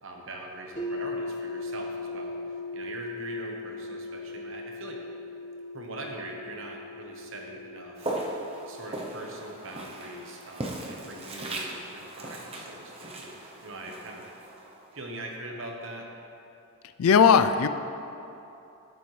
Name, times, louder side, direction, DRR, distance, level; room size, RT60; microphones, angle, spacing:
voice 1, 0.0-2.3 2.7-5.0 5.7-8.2 8.7-14.3 14.9-16.1, right 1 dB, 60° right, 1 dB, 1.1 m, -42 dB
sound 1, 0.8-12.7, left 2 dB, 55° left, 1.5 m, -40 dB
Walk footsteps, 8.0-15.1, right 2 dB, 25° right, 0.7 m, -38 dB
voice 2, 17.0-17.7, left 7 dB, 80° left, 11 dB, 0.4 m, -18 dB
10.5 x 7.0 x 3.2 m, 2.9 s
head